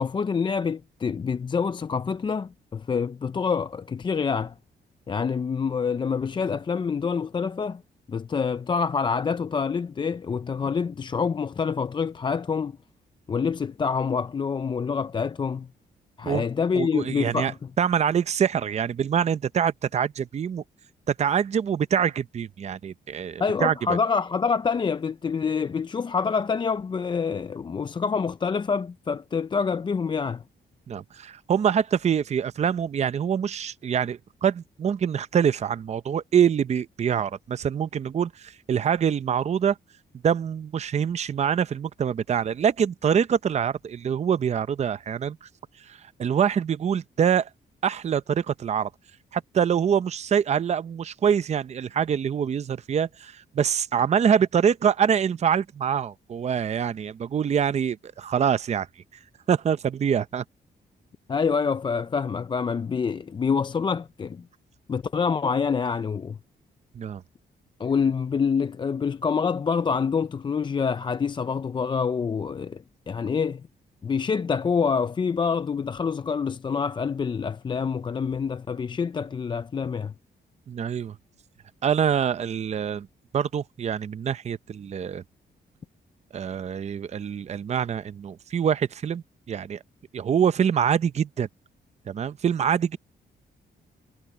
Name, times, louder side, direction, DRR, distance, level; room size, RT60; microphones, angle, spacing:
voice 1, 0.0-4.5 5.1-7.8 8.1-12.8 13.3-15.7 16.2-17.5 23.4-30.4 61.3-64.4 64.9-66.4 67.8-73.6 74.0-80.1, left 5 dB, 25° left, 0.4 m, -26 dB
voice 2, 16.7-20.6 21.1-24.0 30.9-39.8 40.2-45.5 45.9-47.5 47.8-48.9 49.3-58.9 59.5-60.4 66.9-67.2 80.7-81.2 81.8-83.1 83.3-85.2 86.3-89.8 90.1-91.5 92.1-93.0, right 8 dB, 40° right, 0.6 m, -25 dB
cardioid pair, 130°, 18 cm